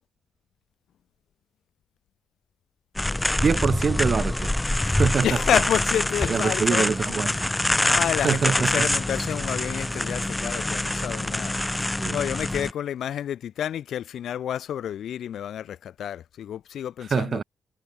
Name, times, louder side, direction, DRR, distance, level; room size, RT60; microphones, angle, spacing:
sound 1, 3.0-12.7, left 1 dB, 15° left, 1.0 m, -25 dB
voice 1, 3.4-4.5 4.8-5.3 6.3-7.5 8.2-8.9 12.0-12.1 17.1-17.4, right 5 dB, 50° right, 0.6 m, -24 dB
voice 2, 5.2-17.4, left 10 dB, 65° left, 1.7 m, -30 dB
hypercardioid pair, 40°, 0 cm